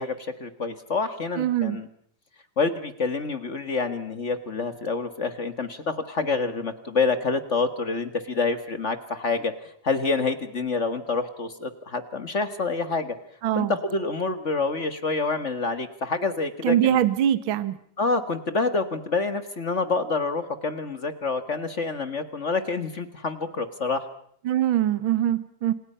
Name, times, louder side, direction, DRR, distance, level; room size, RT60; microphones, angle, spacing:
voice 1, 0.0-1.9 2.6-9.5 9.8-13.1 13.5-17.0 18.0-24.1, left 4 dB, 45° left, 10 dB, 0.9 m, -27 dB
voice 2, 1.4-1.8 13.4-13.7 16.6-17.8 24.4-25.7, right 11 dB, 55° right, 13 dB, 1.5 m, -23 dB
29.5 x 27.5 x 5.7 m, 0.65 s
omnidirectional pair, 3.7 m